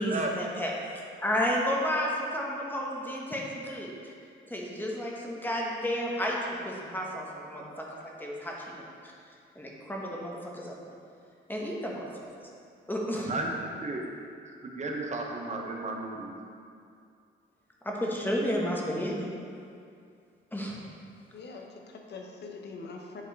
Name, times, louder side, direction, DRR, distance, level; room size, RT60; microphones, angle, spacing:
voice 1, 0.0-3.9 4.5-8.9 9.5-10.7 11.5-12.0 12.9-13.3 17.8-19.3 20.5-20.8, equal, 10° left, -2 dB, 1.3 m, -32 dB
voice 2, 13.3-14.1 14.4-16.3, right 2 dB, 35° right, 0 dB, 1.1 m, -34 dB
voice 3, 21.3-23.2, left 4 dB, 55° left, 1 dB, 1.0 m, -43 dB
9.3 x 3.5 x 4.7 m, 2.4 s
cardioid pair, 90°, 20 cm